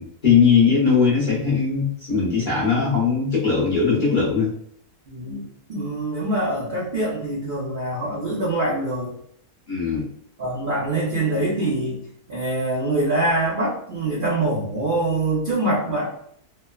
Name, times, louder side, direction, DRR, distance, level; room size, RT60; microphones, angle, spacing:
voice 1, 0.0-4.5 9.7-10.0, left 5 dB, 40° left, -8 dB, 0.9 m, -19 dB
voice 2, 5.1-5.4 5.7-9.1 10.4-12.0 12.3-16.1, right 2 dB, 55° right, -7 dB, 0.6 m, -24 dB
3.1 x 2.1 x 2.2 m, 0.67 s
omnidirectional pair, 1.6 m